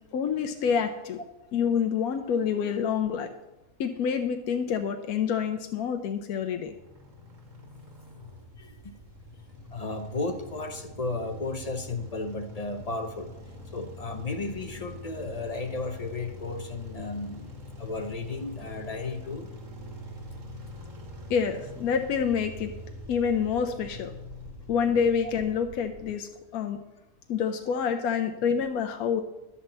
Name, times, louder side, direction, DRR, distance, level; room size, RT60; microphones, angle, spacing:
voice 1, 0.1-1.2 1.5-3.3 3.8-6.7 21.3-22.7 23.1-24.1 24.7-26.8 27.3-29.2, left 7 dB, 85° left, 6 dB, 1.1 m, -27 dB
sound 1, 6.6-26.1, left 1 dB, 65° right, 1.9 m, -44 dB
voice 2, 8.6-8.9 9.7-13.3 13.6-19.5 23.5-23.8, left 3 dB, 35° left, 6 dB, 0.7 m, -34 dB
11.5 x 4.3 x 7.2 m, 0.99 s
omnidirectional pair, 1.5 m